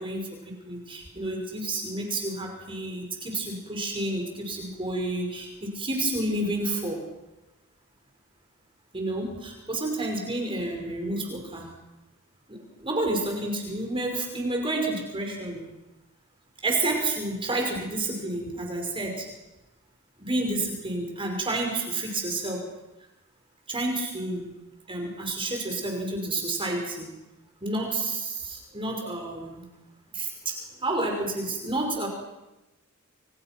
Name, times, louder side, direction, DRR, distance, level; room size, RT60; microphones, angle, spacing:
voice 1, 0.0-7.0 8.9-11.7 12.5-15.7 16.6-19.3 20.2-22.6 23.7-24.4 24.9-27.1 27.6-29.6 30.1-30.6 30.8-32.1, right 2 dB, 25° right, 1 dB, 5.5 m, -30 dB
30.0 x 28.5 x 6.1 m, 0.99 s
head